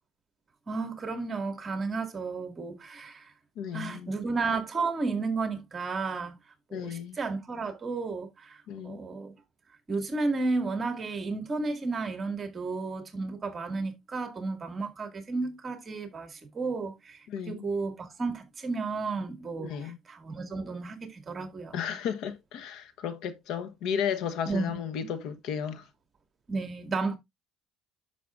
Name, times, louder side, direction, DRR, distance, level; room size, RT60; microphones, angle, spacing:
voice 1, 0.7-3.3 3.7-6.4 6.7-9.3 9.9-21.8 24.5-24.8 25.0-25.1 26.5-27.1, right 3 dB, 25° right, 2.0 m, -33 dB
voice 2, 3.6-4.1 6.7-7.2 8.7-9.0 17.3-17.7 19.6-20.0 21.7-25.9, left 8 dB, 65° left, 1.1 m, -34 dB
10.5 x 6.8 x 2.5 m
cardioid pair, 115°, 0 cm